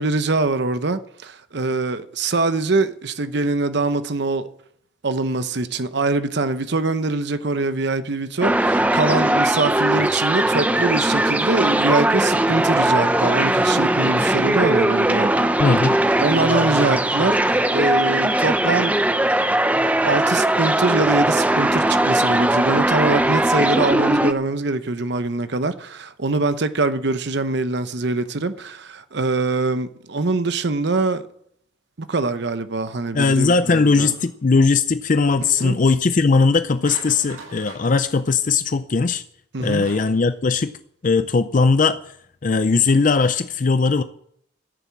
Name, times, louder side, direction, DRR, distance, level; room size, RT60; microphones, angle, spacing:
voice 1, 0.0-4.5 5.0-15.5 16.2-19.0 19.8-31.3 32.0-34.1 35.6-35.8 39.5-39.8, right 3 dB, 60° right, 0.8 m, -23 dB
sound 1, 8.4-24.3, right 1 dB, 10° right, 0.5 m, -19 dB
voice 2, 15.6-16.0 33.1-39.2 39.6-40.7 41.0-42.0 42.4-44.0, left 4 dB, 40° left, 0.5 m, -19 dB
sound 2, 36.8-38.3 39.8-40.3, right 3 dB, 85° right, 7.6 m, -40 dB
13.5 x 7.2 x 8.4 m
head